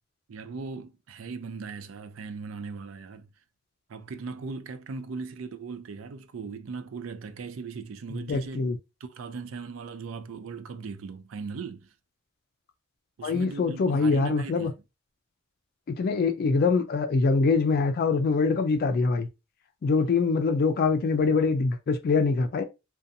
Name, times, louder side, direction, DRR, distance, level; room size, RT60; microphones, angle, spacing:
voice 1, 0.3-3.3 3.9-8.7 9.0-11.9 13.2-14.7, right 4 dB, 90° right, 0.4 m, -38 dB
voice 2, 8.3-8.8 13.2-14.7 15.9-19.3 19.8-22.6, left 4 dB, 50° left, 0.3 m, -24 dB
2.6 x 2.2 x 2.5 m
head